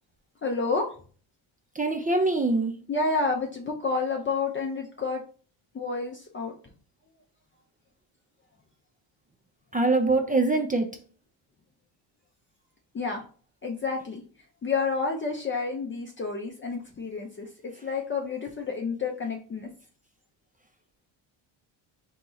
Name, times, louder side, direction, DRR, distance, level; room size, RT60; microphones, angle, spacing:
voice 1, 0.4-0.9 2.9-5.2 5.7-6.5 12.9-13.2 13.6-14.2 14.6-17.5 17.8-19.7, left 4 dB, 25° left, 1 dB, 0.6 m, -29 dB
voice 2, 1.7-2.7 9.7-10.9, right 2 dB, 20° right, 4 dB, 0.5 m, -23 dB
3.7 x 2.9 x 3.9 m, 0.41 s
cardioid pair, 105°, 48 cm